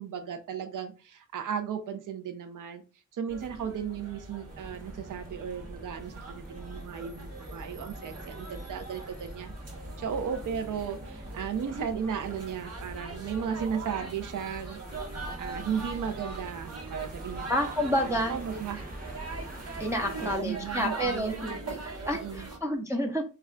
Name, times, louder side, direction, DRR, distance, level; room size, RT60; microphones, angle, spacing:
voice 1, 0.0-2.8 3.1-9.5 10.0-14.8 15.4-17.5 18.0-18.8 20.2-21.6 22.1-22.5, right 7 dB, 75° right, 7 dB, 0.5 m, -35 dB
sound 1, 3.3-22.6, right 2 dB, 50° right, 1.0 m, -41 dB
sound 2, 4.5-20.4, right 1 dB, 30° right, 0.8 m, -46 dB
voice 2, 17.5-18.3 19.8-23.2, equal, 10° right, 1 dB, 0.4 m, -30 dB
2.2 x 2.1 x 3.5 m, 0.33 s
wide cardioid pair, 70°, 31 cm